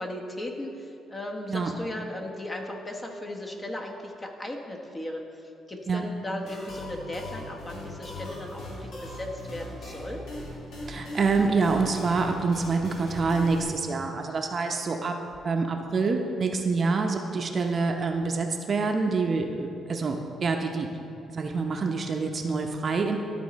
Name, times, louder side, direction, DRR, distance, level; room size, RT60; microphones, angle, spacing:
voice 1, 0.0-10.3 16.5-16.7, left 1 dB, 25° left, 1 dB, 1.1 m, -37 dB
sound 1, 6.5-13.6, left 1 dB, 75° left, 1.9 m, -40 dB
voice 2, 10.9-15.2 15.4-20.9 21.3-23.2, right 4 dB, 45° right, 3 dB, 0.7 m, -26 dB
12.5 x 4.2 x 4.1 m, 2.6 s
cardioid pair, 90°, 0 cm